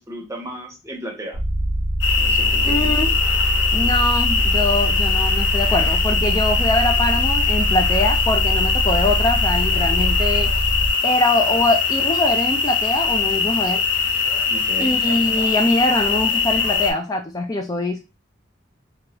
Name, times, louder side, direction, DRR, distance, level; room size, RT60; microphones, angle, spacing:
voice 1, 0.0-1.4 2.2-3.0 14.5-15.0, equal, 15° right, 1 dB, 0.7 m, -34 dB
sound 1, 1.3-10.9, right 1 dB, 40° left, 0.9 m, -23 dB
sound 2, 2.0-16.9, left 5 dB, 65° left, 0.6 m, -21 dB
voice 2, 2.6-3.1 3.7-10.5 11.0-13.8 14.8-18.0, left 2 dB, 20° left, 3 dB, 0.3 m, -23 dB
2.8 x 2.3 x 2.9 m, 0.27 s
head